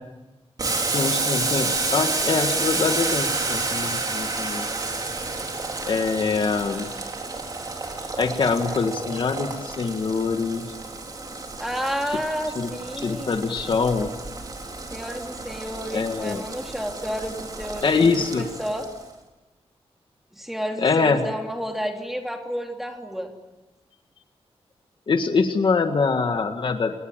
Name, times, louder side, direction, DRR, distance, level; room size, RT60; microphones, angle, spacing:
Boiling, 0.6-19.0, right 3 dB, 35° right, 4.0 m, -30 dB
voice 1, 0.9-4.7 5.8-6.9 8.2-10.7 12.1-12.2 12.5-12.7 13.0-14.1 15.9-16.4 17.8-18.4 20.8-21.2 25.1-26.9, left 4 dB, 50° left, 6 dB, 1.8 m, -24 dB
voice 2, 11.6-13.5 14.9-18.9 20.3-23.3, equal, 5° right, 2 dB, 3.1 m, -31 dB
28.0 x 19.5 x 9.0 m, 1.1 s
wide cardioid pair, 160°, 11 cm